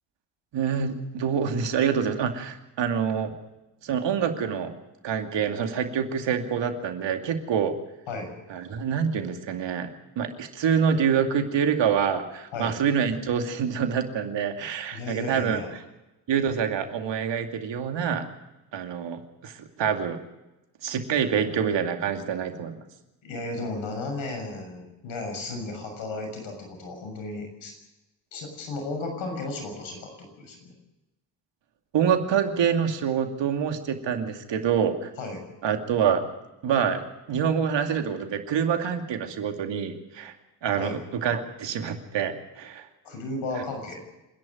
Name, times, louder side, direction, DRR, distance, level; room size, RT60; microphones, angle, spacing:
voice 1, 0.5-3.3 3.8-4.7 5.0-7.7 8.5-9.9 10.2-15.6 16.3-18.2 18.7-20.2 20.8-22.8 31.9-35.1 35.6-36.2 36.6-37.0 37.3-40.3 40.6-42.9, right 7 dB, 60° right, 6 dB, 2.5 m, -26 dB
voice 2, 14.9-15.7 23.2-27.7 28.3-30.7 35.2-35.4 40.8-41.0 43.0-44.0, left 2 dB, 70° left, 4 dB, 6.7 m, -34 dB
26.5 x 10.5 x 9.3 m, 1.0 s
hypercardioid pair, 55°, 48 cm